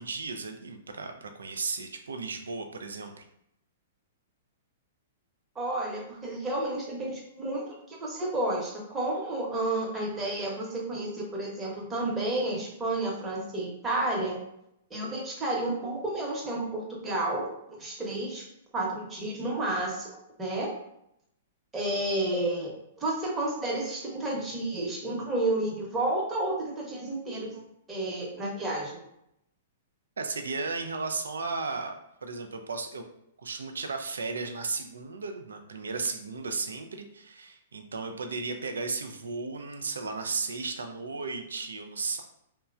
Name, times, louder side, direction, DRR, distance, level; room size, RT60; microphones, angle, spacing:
voice 1, 0.0-3.2 30.2-31.9 32.2-33.1 33.4-42.2, right 4 dB, 80° right, 6 dB, 0.3 m, -35 dB
voice 2, 5.5-14.4 14.9-18.4 18.7-20.7 21.7-22.7 23.0-27.6 27.9-29.0, right 2 dB, 15° right, -3 dB, 0.9 m, -31 dB
3.0 x 2.1 x 2.4 m, 0.77 s
hypercardioid pair, 110°, 0 cm